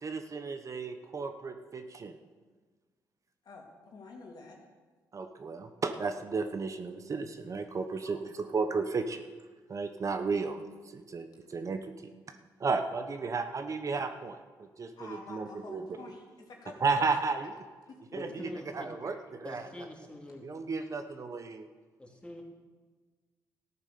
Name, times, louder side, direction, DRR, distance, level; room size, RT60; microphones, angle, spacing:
voice 1, 0.0-2.1 5.1-9.2 9.7-11.8 12.6-15.8 16.8-17.6 18.1-18.5 18.7-19.6 20.4-21.7, right 4 dB, 45° right, 7 dB, 1.0 m, -33 dB
voice 2, 3.4-4.6 8.1-8.2 15.0-17.2 17.9-18.0, left 3 dB, 60° left, 0 dB, 3.0 m, -49 dB
voice 3, 18.1-18.9 19.4-20.5 22.0-22.4, left 1 dB, 15° left, 0 dB, 3.1 m, -44 dB
14.0 x 8.8 x 6.9 m, 1.4 s
cardioid pair, 70°, 8 cm